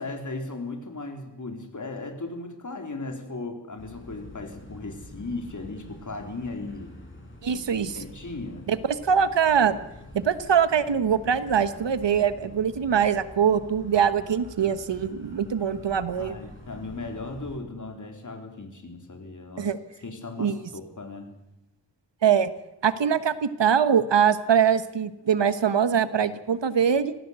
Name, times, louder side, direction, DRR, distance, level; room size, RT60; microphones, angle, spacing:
voice 1, 0.0-6.9 7.5-8.7 16.1-19.7 20.0-21.3, left 3 dB, 45° left, 4 dB, 3.9 m, -37 dB
sound 1, 3.8-17.6, left 2 dB, 30° left, 6.6 m, -46 dB
voice 2, 7.4-8.0 8.7-9.8 10.1-16.3 19.6-19.8 20.4-20.6 22.2-22.5 22.8-27.1, right 7 dB, 85° right, 13 dB, 1.3 m, -23 dB
24.5 x 17.0 x 8.2 m, 0.92 s
wide cardioid pair, 115°, 42 cm